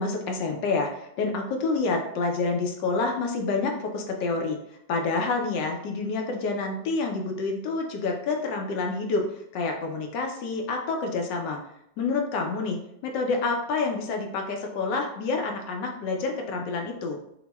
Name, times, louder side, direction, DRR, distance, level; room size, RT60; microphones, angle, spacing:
voice 1, 0.0-4.6 4.9-11.6 12.0-17.2, left 3 dB, 75° left, 2 dB, 1.3 m, -28 dB
5.8 x 2.2 x 2.2 m, 0.77 s
omnidirectional pair, 2.0 m